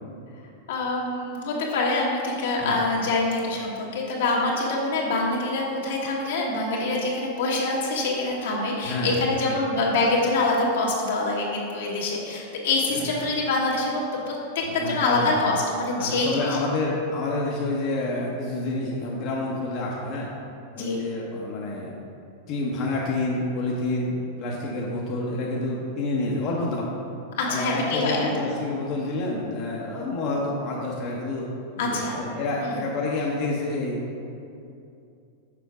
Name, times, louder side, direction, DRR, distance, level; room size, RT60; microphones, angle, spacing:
voice 1, 0.7-16.6 20.7-21.0 27.4-28.3 31.8-32.2 32.6-32.8, left 2 dB, 75° left, -3 dB, 1.6 m, -25 dB
voice 2, 9.4-9.8 12.9-13.1 14.7-15.4 16.0-20.3 20.7-21.9 22.5-26.9 27.5-31.5 31.8-34.0, left 2 dB, 45° left, -4 dB, 0.9 m, -28 dB
6.8 x 4.5 x 4.8 m, 2.6 s
hypercardioid pair, 125°, 0 cm